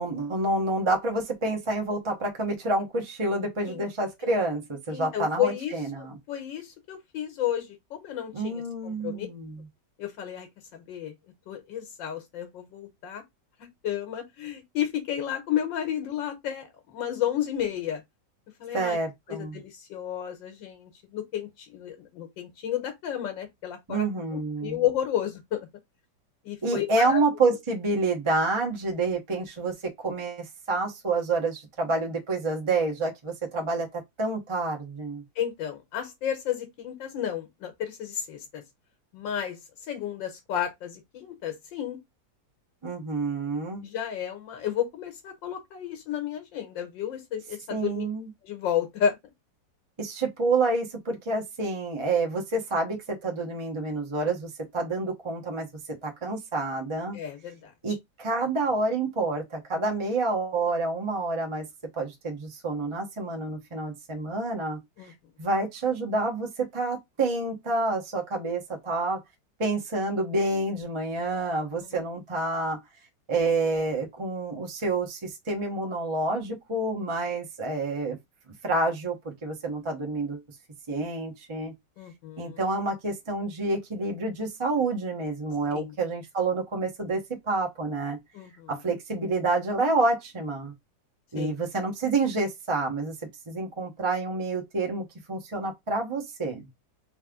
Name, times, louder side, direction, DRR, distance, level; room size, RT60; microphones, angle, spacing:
voice 1, 0.0-6.2 8.3-9.6 18.7-19.6 23.9-24.8 26.6-35.2 42.8-43.8 47.7-48.3 50.0-55.7 56.0-57.2 57.8-61.6 62.0-64.8 65.1-69.2 69.6-72.8 73.3-78.2 78.6-80.4 80.9-81.7 82.4-87.2 87.5-88.2 88.7-90.7 91.3-93.1 93.5-96.7, right 3 dB, 20° right, 0.8 m, -28 dB
voice 2, 4.9-5.8 6.3-9.3 10.0-10.5 10.7-11.1 11.5-13.2 13.8-18.0 18.6-19.0 19.3-24.0 24.3-25.6 26.4-27.2 27.5-27.6 35.4-38.6 39.1-39.6 39.9-42.0 43.8-48.0 48.4-49.2 57.1-57.7 65.0-65.1 82.0-82.6 85.7-85.9 88.3-88.8 91.4-91.5, left 10 dB, 85° left, 1.7 m, -32 dB
3.4 x 3.4 x 3.6 m
omnidirectional pair, 2.0 m